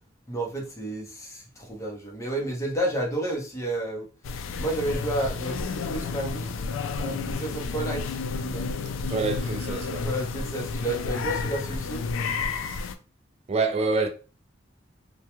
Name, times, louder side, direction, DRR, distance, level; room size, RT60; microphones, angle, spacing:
voice 1, 0.3-4.1 4.6-6.5 7.0-8.7 10.0-12.0, right 1 dB, 15° left, 0.7 m, -31 dB
sound 1, 4.2-12.9, left 4 dB, 75° left, 0.3 m, -31 dB
voice 2, 9.1-10.1 13.5-14.1, right 3 dB, 35° right, 0.3 m, -26 dB
2.3 x 2.2 x 2.9 m
head